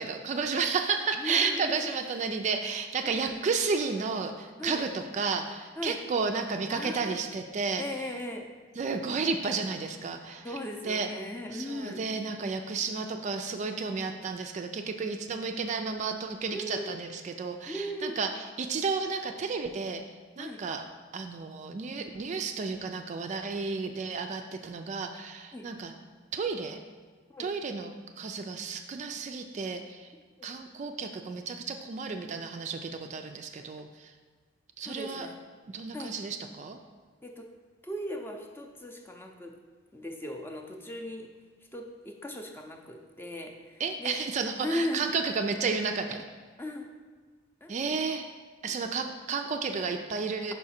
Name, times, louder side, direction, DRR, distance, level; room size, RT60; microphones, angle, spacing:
voice 1, 0.0-7.8 8.8-10.4 10.8-11.1 11.5-20.0 20.4-20.8 21.1-25.9 26.3-26.8 27.4-30.1 30.4-34.1 34.8-35.3 35.7-36.8 43.8-46.2 47.7-48.3 48.6-50.5, right 4 dB, 40° right, 5 dB, 0.3 m, -32 dB
voice 2, 1.2-2.0 3.0-3.2 4.6-4.8 5.8-6.0 6.7-7.2 7.8-8.5 10.4-12.0 16.5-17.0 17.7-18.2 20.4-20.6 25.5-25.7 27.3-27.5 30.4-30.5 34.8-35.3 35.9-36.1 37.2-37.5 37.8-39.5 39.9-41.3 41.7-44.2 44.6-45.1 46.6-46.9 47.6-48.2, left 1 dB, 10° left, 2 dB, 0.5 m, -37 dB
5.4 x 4.8 x 4.3 m, 1.5 s
head